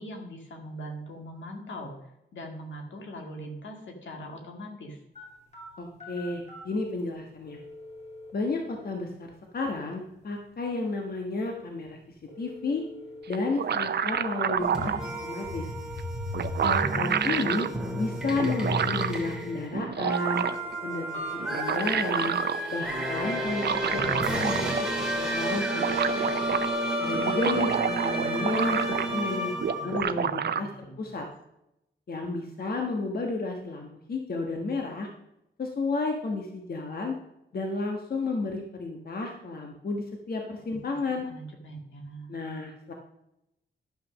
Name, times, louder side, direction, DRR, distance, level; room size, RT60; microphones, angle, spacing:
voice 1, 0.0-1.9 2.3-5.0 28.1-28.5 29.0-31.2 40.7-40.8 41.1-42.3, equal, 75° left, 3 dB, 2.1 m, -42 dB
sound 1, 5.1-21.9, left 2 dB, 35° left, 3.2 m, -48 dB
voice 2, 5.8-7.6 8.3-9.3 9.5-12.0 12.4-12.8 13.3-15.7 16.6-17.7 18.0-20.4 20.8-22.4 22.7-24.7 25.2-25.9 27.0-29.5 29.8-31.3 32.1-35.1 35.6-37.1 37.5-41.3 42.3-42.9, left 3 dB, 55° left, 2 dB, 1.3 m, -32 dB
sound 2, 13.3-15.0 16.0-16.1 16.3-17.7 18.4-19.2 19.7-20.7 21.4-22.6 23.5-24.9 25.2-25.3 25.5-26.7 27.1-29.3 29.6-30.6, right 7 dB, 60° right, 0.6 m, -29 dB
sound 3, 14.6-30.0, right 1 dB, ahead, 2.5 m, -31 dB
11.5 x 6.0 x 6.3 m, 0.86 s
wide cardioid pair, 105°, 19 cm